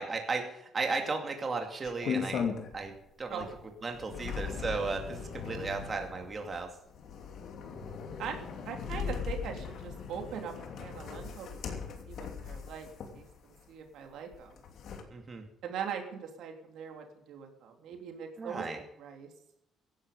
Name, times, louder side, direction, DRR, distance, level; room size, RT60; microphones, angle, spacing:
voice 1, 0.0-2.5 2.7-3.4 3.8-6.7 15.1-15.4 18.4-18.8, right 4 dB, 30° right, 3 dB, 2.5 m, -35 dB
sound 1, 1.8-3.0 3.4-13.6 14.3-15.0, left 6 dB, 65° left, 2.9 m, -39 dB
voice 2, 8.2-12.9 13.1-14.5 15.6-19.3, right 7 dB, 70° right, 4 dB, 3.1 m, -41 dB
16.5 x 11.5 x 5.4 m, 0.81 s
cardioid pair, 105°, 0 cm